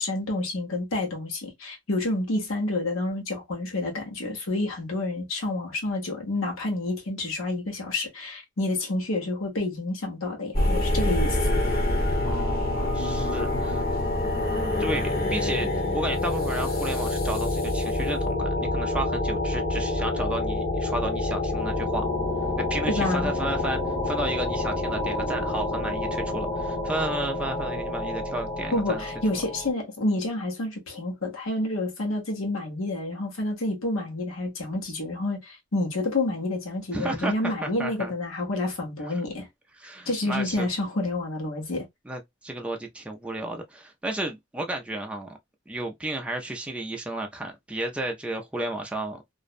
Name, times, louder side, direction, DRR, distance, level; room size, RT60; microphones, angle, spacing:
voice 1, 0.0-11.5 22.9-23.3 28.7-39.5 40.1-41.8, left 2 dB, 85° left, 1.0 m, -29 dB
sound 1, 10.5-29.7, left 2 dB, 50° left, 0.9 m, -27 dB
voice 2, 12.2-13.8 14.8-15.7 15.9-22.0 22.6-23.8 24.0-29.0 36.9-38.1 39.1-39.2 39.8-40.7 42.1-45.3 45.7-49.2, right 1 dB, 5° right, 0.4 m, -32 dB
2.5 x 2.1 x 2.4 m
head